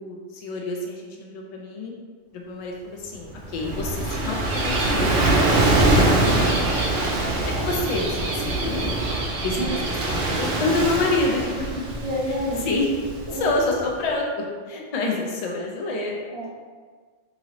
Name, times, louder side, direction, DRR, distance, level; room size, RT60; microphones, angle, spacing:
voice 1, 0.0-1.9 2.3-5.4 5.8-6.9 7.6-9.0 9.4-9.6 10.1-11.7 12.3-12.4 12.6-12.9 13.3-16.2, left 2 dB, 70° left, -1 dB, 0.3 m, -28 dB
Gull seagull / Waves surf, 3.3-13.8, right 2 dB, 70° right, 0.8 m, -23 dB
voice 2, 7.0-7.7 9.6-9.8 11.9-12.7 13.3-13.5 16.3-16.5, equal, 50° right, -6 dB, 0.3 m, -30 dB
2.9 x 2.7 x 2.9 m, 1.5 s
omnidirectional pair, 1.3 m